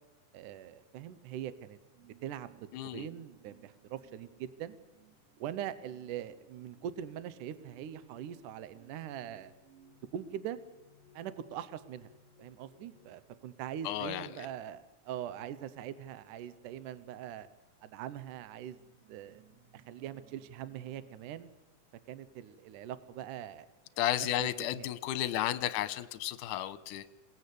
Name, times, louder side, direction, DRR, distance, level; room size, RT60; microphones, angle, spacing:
voice 1, 0.3-1.8 2.2-4.8 5.4-9.5 10.1-10.6 11.1-12.1 12.4-17.5 17.8-18.8 19.1-19.4 19.7-21.5 22.1-23.7 24.4-24.9, right 10 dB, 70° right, 13 dB, 2.3 m, -42 dB
sound 1, 1.7-14.0 14.8-15.1 16.2-16.3 17.0-17.1 17.8-21.3, right 3 dB, 40° right, 5.3 m, -64 dB
voice 2, 2.7-3.1 13.8-14.5 24.0-27.1, left 12 dB, 70° left, 13 dB, 2.3 m, -33 dB
27.5 x 18.5 x 8.5 m, 1.1 s
omnidirectional pair, 4.1 m